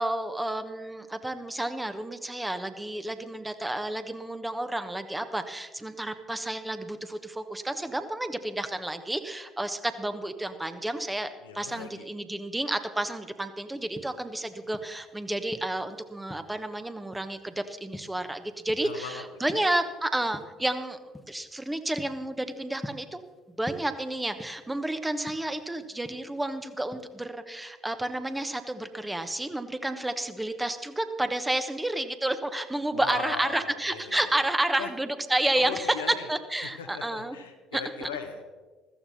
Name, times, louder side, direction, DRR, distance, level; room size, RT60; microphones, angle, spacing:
voice 1, 0.0-11.3 11.5-21.0 21.3-23.2 23.6-37.4 37.7-38.1, right 1 dB, 10° right, 9 dB, 1.2 m, -31 dB
voice 2, 11.4-12.0 18.8-19.2 19.5-19.6 32.9-34.3 34.8-34.9 35.6-36.3 36.6-38.5, left 6 dB, 80° left, 4 dB, 1.2 m, -39 dB
sound 1, 13.8-15.1 15.5-16.7 17.1-17.5 17.9-19.1 19.3-19.9 20.3-20.7 21.1-21.4 21.7-23.4 23.7-24.8 25.1-26.6 26.9-27.2, left 1 dB, 10° left, 1.1 m, -44 dB
14.5 x 14.5 x 4.2 m, 1.3 s
figure-of-eight pair, 55°, 0 cm